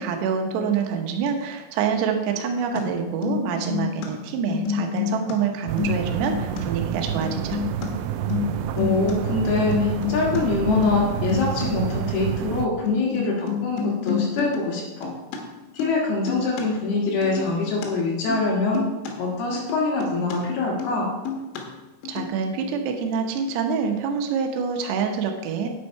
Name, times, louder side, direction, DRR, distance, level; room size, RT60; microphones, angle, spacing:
voice 1, 0.0-7.6 22.1-25.7, right 6 dB, 75° right, 3 dB, 3.0 m, -26 dB
sound 1, 2.8-2.9 3.1-4.1 4.4-5.3 5.6-6.6 7.1-7.9 8.2-9.1 9.4-10.4 10.7-11.0 11.3-11.7 12.2-12.3 12.6-12.7 12.9-15.4 15.7-16.0 16.3-16.6 17.1-17.9 18.2-18.5 18.8-19.1 19.5-20.4 20.6-21.0 21.3-21.6 22.0-22.3, left 7 dB, 90° left, 3.8 m, -28 dB
sound 2, 5.7-12.7, right 10 dB, 90° right, 2.4 m, -28 dB
voice 2, 8.8-15.1 15.7-18.9 19.2-21.1, left 3 dB, 65° left, -2 dB, 3.2 m, -24 dB
9.6 x 8.4 x 4.7 m, 1.2 s
omnidirectional pair, 5.5 m